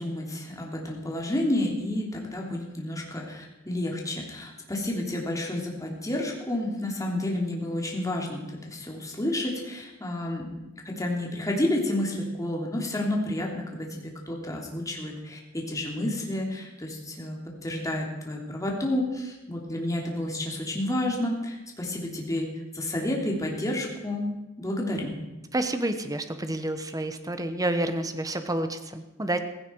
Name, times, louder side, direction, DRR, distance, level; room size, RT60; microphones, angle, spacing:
voice 1, 0.0-10.5 10.8-22.5 22.7-24.3 24.6-25.2, left 1 dB, 15° left, -1 dB, 3.0 m, -30 dB
voice 2, 25.5-29.4, right 1 dB, 15° right, 8 dB, 1.1 m, -29 dB
16.0 x 15.5 x 4.6 m, 1.0 s
head